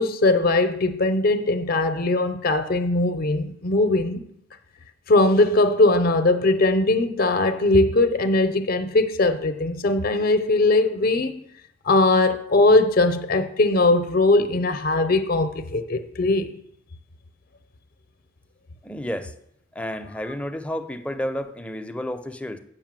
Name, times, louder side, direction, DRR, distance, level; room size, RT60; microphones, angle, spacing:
voice 1, 0.0-4.2 5.1-11.3 11.8-16.5, left 2 dB, 50° left, 0.6 m, -20 dB
voice 2, 18.8-19.3 19.7-22.6, equal, 5° left, 0.5 m, -31 dB
8.0 x 5.5 x 7.4 m
head